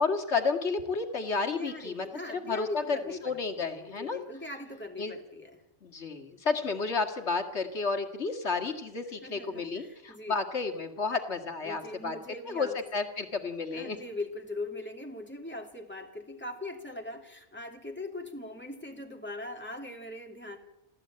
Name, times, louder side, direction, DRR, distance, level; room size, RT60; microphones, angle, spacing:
voice 1, 0.0-3.0 3.2-4.2 5.0-5.1 5.8-12.2 12.5-14.0, left 4 dB, 65° left, 5 dB, 2.4 m, -31 dB
voice 2, 1.6-3.6 3.9-5.6 9.0-10.4 11.6-12.8 13.7-20.6, left 2 dB, 10° left, 2 dB, 2.7 m, -41 dB
28.0 x 14.5 x 8.8 m, 1.0 s
omnidirectional pair, 1.2 m